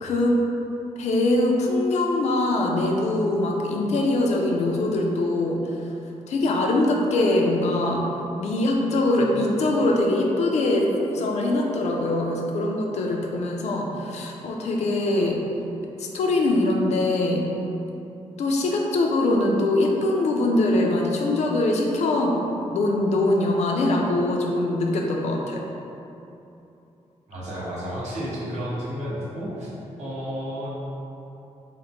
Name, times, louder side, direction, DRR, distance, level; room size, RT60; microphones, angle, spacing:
voice 1, 0.0-0.4 1.0-5.8 6.3-8.1 8.4-15.4 16.0-17.5 18.4-22.4 22.7-25.6, left 2 dB, 70° left, 0 dB, 0.5 m, -23 dB
voice 2, 27.3-29.7 30.0-30.7, equal, 75° right, -8 dB, 1.2 m, -31 dB
3.9 x 2.1 x 4.3 m, 2.9 s
wide cardioid pair, 140°, 12 cm